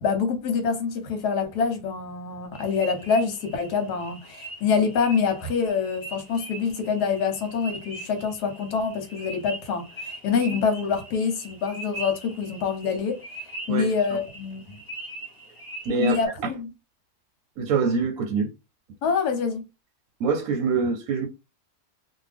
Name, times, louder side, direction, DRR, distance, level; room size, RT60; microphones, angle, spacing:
voice 1, 0.0-13.2 13.7-14.8 16.0-16.7 19.0-19.6, left 5 dB, 80° left, 1.3 m, -26 dB
sound 1, 2.5-16.3, right 2 dB, 15° left, 0.7 m, -41 dB
voice 2, 15.9-16.5 17.6-18.5 20.2-21.3, right 5 dB, 70° right, 0.9 m, -25 dB
2.7 x 2.4 x 3.3 m
omnidirectional pair, 1.7 m